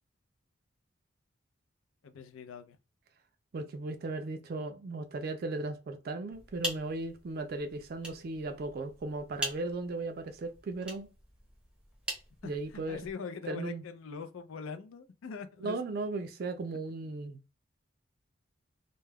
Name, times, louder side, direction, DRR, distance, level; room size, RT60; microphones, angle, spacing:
voice 1, 2.0-2.8 12.4-15.8, left 5 dB, 85° left, 0.4 m, -42 dB
voice 2, 3.5-11.1 12.4-13.0 13.5-13.8 15.6-17.4, right 3 dB, 50° right, 0.3 m, -36 dB
sound 1, 6.3-13.1, right 1 dB, 5° right, 0.6 m, -43 dB
2.3 x 2.1 x 3.2 m
head